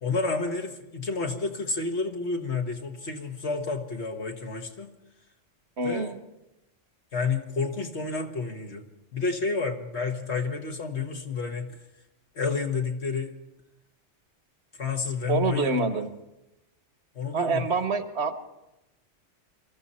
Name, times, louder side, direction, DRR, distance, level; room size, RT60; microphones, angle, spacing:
voice 1, 0.0-4.9 5.8-6.1 7.1-8.9 9.1-11.8 12.4-13.3 14.8-16.0 17.2-17.7, left 4 dB, 60° left, 4 dB, 1.7 m, -30 dB
voice 2, 5.8-6.2 15.3-16.1 17.3-18.4, right 4 dB, 60° right, 9 dB, 1.3 m, -26 dB
23.5 x 14.0 x 4.3 m, 0.92 s
omnidirectional pair, 1.3 m